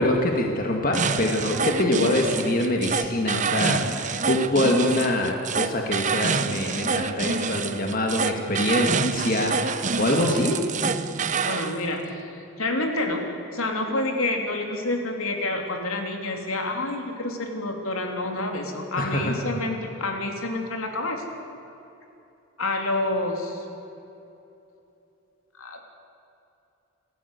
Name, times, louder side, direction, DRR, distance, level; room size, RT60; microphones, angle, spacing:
voice 1, 0.0-10.6 19.0-19.4, left 1 dB, 40° left, 2 dB, 2.0 m, -24 dB
sound 1, 0.9-11.7, right 5 dB, 35° right, 0.8 m, -27 dB
voice 2, 11.4-13.2 13.5-21.2 22.6-23.6 25.6-25.8, left 2 dB, 75° left, 3 dB, 3.4 m, -28 dB
29.0 x 15.0 x 8.3 m, 2.9 s
head